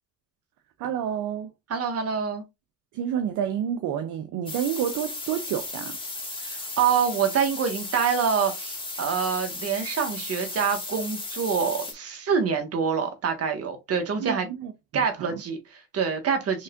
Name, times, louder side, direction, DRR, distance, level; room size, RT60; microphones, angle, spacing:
voice 1, 0.8-1.5 2.9-6.0 14.2-15.4, right 9 dB, 65° right, 0.7 m, -29 dB
voice 2, 1.7-2.4 6.4-14.5 14.9-16.6, right 6 dB, 45° right, 1.6 m, -26 dB
sound 1, 4.5-11.9, left 2 dB, 15° left, 2.0 m, -35 dB
5.4 x 3.2 x 2.5 m
supercardioid pair, 90°, 33 cm